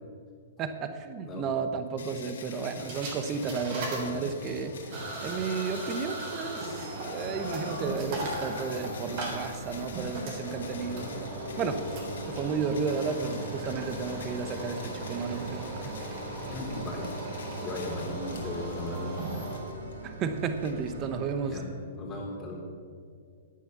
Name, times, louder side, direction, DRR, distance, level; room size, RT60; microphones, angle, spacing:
voice 1, 0.6-4.8 5.2-11.3 11.6-12.0 12.3-15.9 20.0-21.6, right 5 dB, 30° right, 9 dB, 1.0 m, -33 dB
sound 1, 2.0-21.3, left 5 dB, 70° left, 1.6 m, -49 dB
sound 2, 2.7-19.6, right 1 dB, 50° right, 3.7 m, -38 dB
sound 3, 7.2-21.5, right 1 dB, 65° right, 1.7 m, -44 dB
voice 2, 16.4-17.1 17.6-19.3 21.4-21.7 21.9-22.6, left 2 dB, 15° left, -3 dB, 3.7 m, -37 dB
9.6 x 9.4 x 6.9 m, 2.2 s
hypercardioid pair, 130°, 0 cm